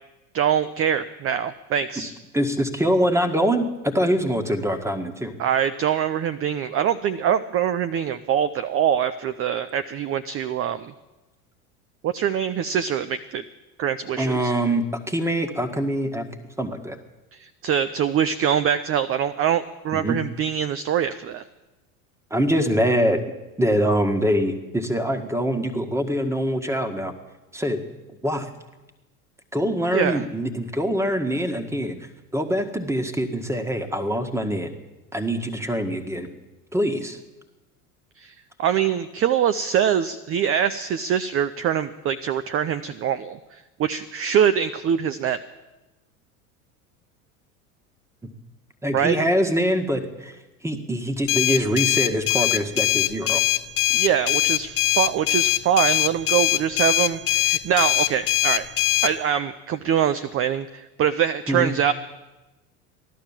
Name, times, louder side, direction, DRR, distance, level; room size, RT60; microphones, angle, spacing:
voice 1, 0.3-2.1 5.4-10.9 12.0-13.4 13.8-14.5 17.3-21.4 29.9-30.2 38.2-45.4 48.9-49.2 53.9-58.6 59.0-61.9, right 9 dB, 30° right, 12 dB, 0.6 m, -24 dB
voice 2, 2.3-5.4 14.2-16.3 16.6-17.0 19.9-20.2 22.3-23.2 23.6-27.1 27.5-27.8 28.2-28.5 29.5-32.0 32.3-34.7 35.1-36.3 36.7-37.2 48.2-48.3 48.8-53.4 61.5-61.7, equal, 5° right, 7 dB, 1.8 m, -24 dB
sound 1, 51.3-59.1, left 16 dB, 50° left, 1.1 m, -21 dB
16.0 x 11.5 x 7.4 m, 1.1 s
hypercardioid pair, 90°, 43 cm